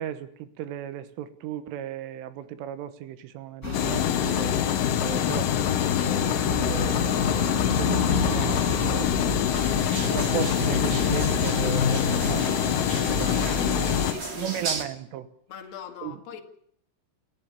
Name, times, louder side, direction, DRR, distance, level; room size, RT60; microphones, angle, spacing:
voice 1, 0.0-4.6 5.0-5.5 6.0-14.0 14.4-15.3 16.0-16.2, right 11 dB, 85° right, 3.7 m, -36 dB
sound 1, 3.6-14.1, left 3 dB, 15° left, 6.4 m, -29 dB
sound 2, 3.7-14.1, left 11 dB, 85° left, 3.9 m, -26 dB
sound 3, 9.5-14.8, right 4 dB, 45° right, 1.5 m, -36 dB
voice 2, 13.4-14.8 15.5-16.4, left 8 dB, 60° left, 4.1 m, -42 dB
29.5 x 14.5 x 7.0 m
omnidirectional pair, 5.6 m